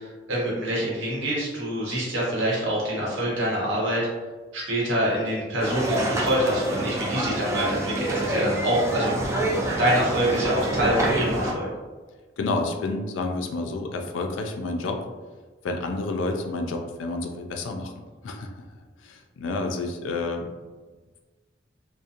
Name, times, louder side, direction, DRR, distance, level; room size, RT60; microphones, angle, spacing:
voice 1, 0.0-4.1 4.5-9.2 9.8-11.7, right 1 dB, 90° right, -5 dB, 0.9 m, -25 dB
sound 1, 5.6-11.5, right 1 dB, 15° right, 0.3 m, -27 dB
voice 2, 12.4-15.0 15.6-17.9 18.2-20.5, left 3 dB, 90° left, 4 dB, 0.3 m, -30 dB
2.5 x 2.1 x 2.7 m, 1.3 s
head